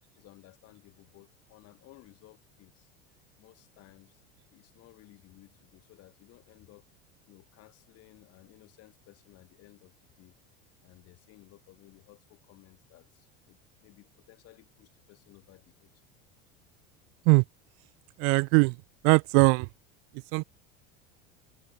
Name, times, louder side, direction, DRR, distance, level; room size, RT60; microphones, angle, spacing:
voice 1, 0.1-2.9 3.4-4.2 4.5-6.9 7.3-10.4 10.8-15.9, left 18 dB, 55° left, 4.0 m, -57 dB
voice 2, 18.2-18.8 19.0-19.7 20.3-20.4, right 40 dB or more, 60° right, 0.4 m, -20 dB
supercardioid pair, 105°, 29 cm